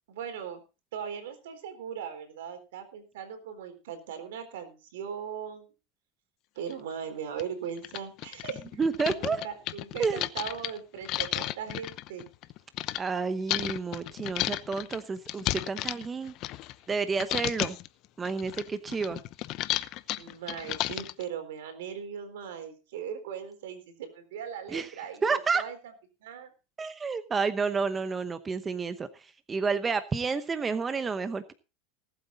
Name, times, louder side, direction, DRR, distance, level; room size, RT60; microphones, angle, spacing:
voice 1, 0.1-0.6 0.9-5.7 6.6-8.8 9.1-12.3 20.2-25.8 26.2-26.5, right 8 dB, 85° right, 8 dB, 3.9 m, -39 dB
sound 1, 6.7-6.8 7.4-7.5 7.8-13.0 13.5-16.9 17.2-17.9 18.2-21.2, left 16 dB, 50° left, 0.8 m, -33 dB
voice 2, 8.8-9.4 10.0-10.3 13.0-16.3 16.9-17.8 18.2-19.2 24.7-24.9 25.2-25.6 26.8-31.5, right 5 dB, 20° right, 11 dB, 0.9 m, -30 dB
19.0 x 8.2 x 4.0 m, 0.32 s
supercardioid pair, 125°, 0 cm